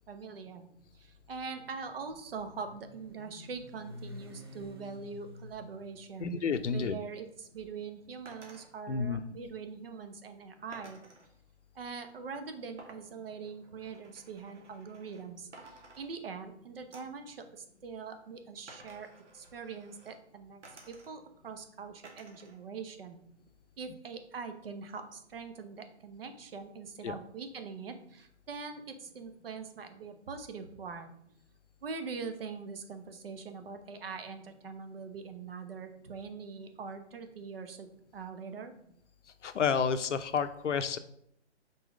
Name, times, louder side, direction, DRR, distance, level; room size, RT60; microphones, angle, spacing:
voice 1, 0.1-0.7 0.9-6.3 6.7-11.0 11.7-23.2 23.8-31.2 31.8-38.7, right 5 dB, 55° right, 8 dB, 1.0 m, -43 dB
Motorcycle, 0.8-9.0, left 1 dB, 20° right, 0.5 m, -52 dB
voice 2, 6.2-7.0 8.9-9.2 27.0-27.2 39.4-41.0, left 6 dB, 85° left, 10 dB, 0.8 m, -30 dB
sound 1, 8.3-8.7 10.7-11.3 12.8-15.3 15.5-16.5 16.9-17.2 18.7-20.2 20.6-21.4 22.0-22.6 22.9-23.7, right 2 dB, 80° right, 2.0 m, -55 dB
5.4 x 4.2 x 5.1 m, 0.71 s
hypercardioid pair, 165°, 35 cm